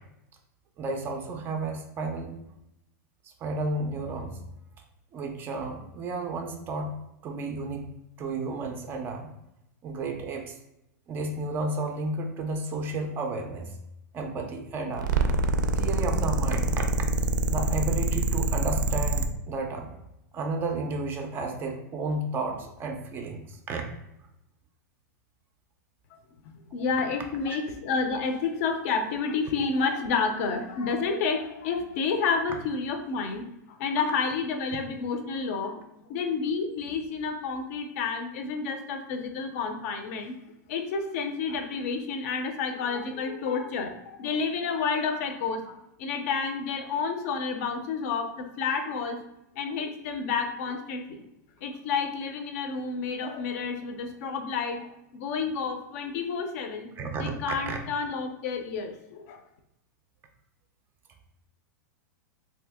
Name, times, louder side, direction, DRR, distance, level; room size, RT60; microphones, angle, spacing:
voice 1, 0.8-2.3 3.2-4.4 5.1-9.3 9.8-10.6 11.1-13.7 14.1-15.1 15.8-16.8 17.5-19.9 20.3-23.8 27.5-27.6 57.0-57.3 57.7-57.8, right 2 dB, 20° right, 3 dB, 0.4 m, -32 dB
sound 1, 15.0-19.3, right 2 dB, 85° right, 0.4 m, -25 dB
voice 2, 26.4-40.3 40.7-49.2 49.6-51.2 51.6-56.9 57.2-59.4, left 5 dB, 50° left, 6 dB, 0.5 m, -30 dB
2.9 x 2.7 x 3.4 m, 0.87 s
supercardioid pair, 150°, 10 cm